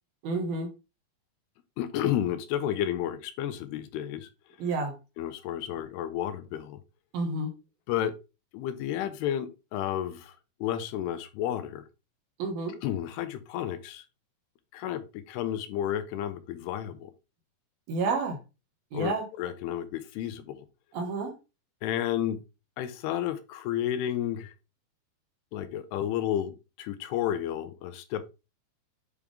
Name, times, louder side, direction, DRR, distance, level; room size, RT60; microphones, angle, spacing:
voice 1, 0.2-0.7 4.6-4.9 7.1-7.5 12.4-12.7 17.9-18.4 18.9-19.2 20.9-21.3, right 3 dB, 70° right, 3.2 m, -30 dB
voice 2, 1.8-4.3 5.2-6.8 7.9-8.1 8.5-11.8 12.8-14.0 14.7-17.1 18.9-20.7 21.8-22.4 22.8-24.5 25.5-28.3, left 11 dB, 85° left, 2.8 m, -31 dB
8.3 x 3.5 x 3.6 m
omnidirectional pair, 4.7 m